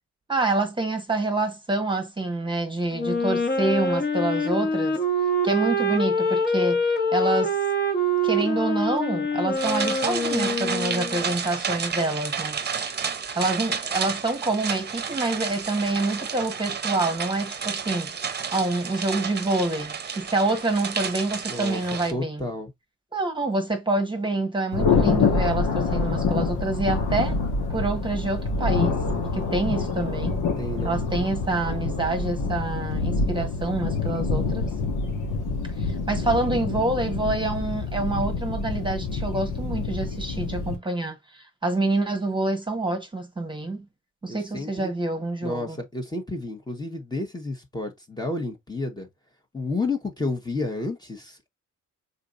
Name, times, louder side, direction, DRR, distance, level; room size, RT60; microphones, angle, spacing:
voice 1, 0.3-5.0 5.4-7.6 8.2-12.6 13.3-18.1 18.5-22.5 23.1-27.4 27.7-30.4 30.8-34.7 35.8-43.9 44.2-45.8, right 2 dB, 15° right, 1.2 m, -27 dB
Wind instrument woodwind instrument, 2.9-11.3, equal, 35° left, 1.5 m, -25 dB
sound 1, 9.5-22.1, right 6 dB, 35° right, 0.9 m, -31 dB
voice 2, 21.5-21.8 22.1-22.7 30.6-31.0 44.3-44.9 45.4-49.1 49.5-51.5, left 2 dB, 15° left, 1.3 m, -31 dB
Thunder, 24.7-40.7, left 4 dB, 85° left, 1.6 m, -26 dB
4.9 x 4.0 x 2.6 m
cardioid pair, 90°, 30 cm